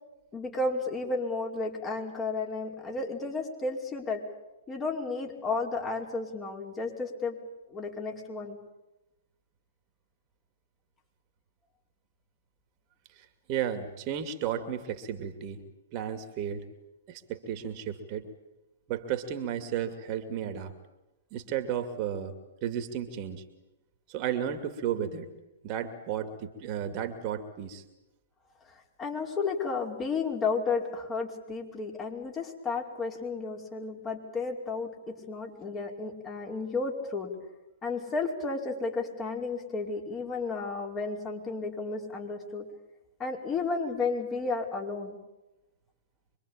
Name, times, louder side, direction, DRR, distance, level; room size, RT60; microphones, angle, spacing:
voice 1, 0.3-4.2 4.7-7.4 7.7-8.6 29.0-37.3 37.8-42.7 43.2-45.2, left 4 dB, 20° left, 0 dB, 5.2 m, -32 dB
voice 2, 13.2-15.6 15.9-16.6 17.1-18.3 18.9-20.7 21.3-22.3 22.6-23.4 24.1-25.3 25.6-27.8, right 9 dB, 40° right, 8 dB, 2.4 m, -33 dB
25.5 x 23.5 x 8.9 m, 1.0 s
figure-of-eight pair, 115°, 0 cm